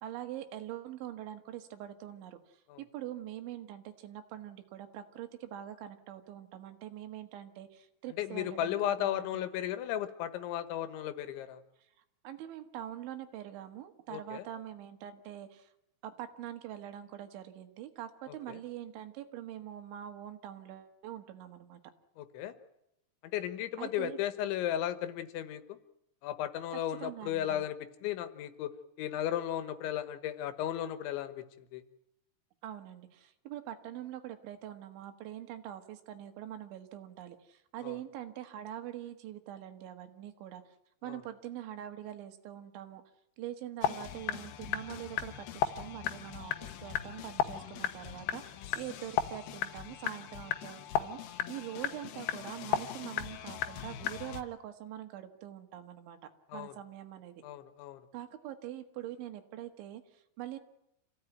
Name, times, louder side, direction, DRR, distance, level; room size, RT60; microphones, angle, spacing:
voice 1, 0.0-9.5 12.2-15.7 16.0-21.8 23.8-24.2 27.0-27.7 32.6-40.8 41.0-43.0 43.4-56.2 56.5-57.4 58.1-60.6, right 12 dB, 85° right, 7 dB, 4.0 m, -44 dB
voice 2, 8.2-11.6 14.1-14.4 18.5-18.6 22.2-22.5 23.2-25.8 26.2-27.8 28.0-28.7 29.0-31.4 31.7-31.8 37.8-37.9 56.5-56.7 57.4-58.0, left 11 dB, 85° left, 11 dB, 3.6 m, -35 dB
sound 1, 43.8-54.4, left 10 dB, 70° left, 2.7 m, -36 dB
27.0 x 16.0 x 9.2 m, 0.81 s
omnidirectional pair, 5.2 m